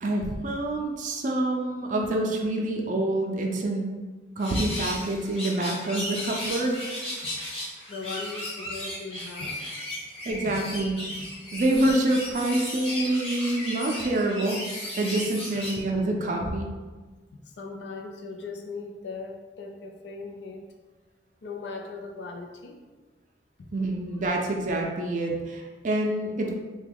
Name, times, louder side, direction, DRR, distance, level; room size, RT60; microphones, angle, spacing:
voice 1, 0.0-3.9 4.4-6.8 10.3-10.9 11.5-14.6 15.0-16.7 23.7-26.5, right 1 dB, 45° right, 1 dB, 0.4 m, -26 dB
sound 1, 4.4-15.8, left 1 dB, 35° left, 0.8 m, -35 dB
voice 2, 7.9-9.6 9.9-10.0 10.5-10.6 17.3-20.6 21.4-22.8 23.6-23.7, left 4 dB, 75° left, 3 dB, 0.5 m, -39 dB
3.4 x 2.2 x 3.4 m, 1.3 s
head